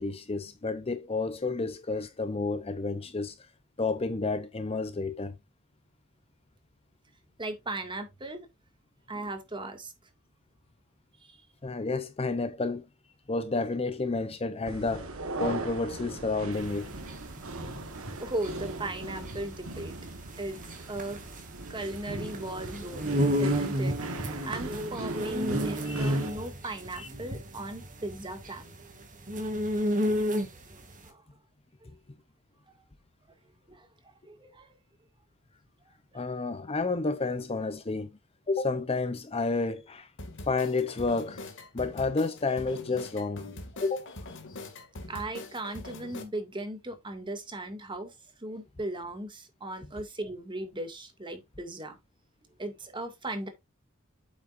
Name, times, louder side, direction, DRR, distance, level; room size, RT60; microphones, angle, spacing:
voice 1, 0.0-3.3 3.8-5.4 11.6-12.9 13.3-15.1 15.4-16.9 17.6-17.9 25.9-26.1 27.0-27.1 36.1-38.1 38.5-40.1 40.5-41.5 41.7-43.5 43.8-44.1, left 3 dB, 30° left, 0.7 m, -30 dB
voice 2, 7.4-8.5 9.1-9.9 11.2-11.4 18.2-19.9 20.4-21.2 21.7-23.1 23.4-24.0 24.4-28.7 30.7-31.2 33.7-34.7 36.1-36.2 45.1-48.1 48.4-52.0 52.6-53.5, right 1 dB, 20° right, 2.1 m, -37 dB
sound 1, 14.7-26.3, right 2 dB, 65° right, 1.3 m, -39 dB
sound 2, 16.6-30.8, equal, 40° right, 2.6 m, -31 dB
sound 3, 40.2-46.2, left 2 dB, 60° left, 2.2 m, -43 dB
8.5 x 7.3 x 2.5 m
head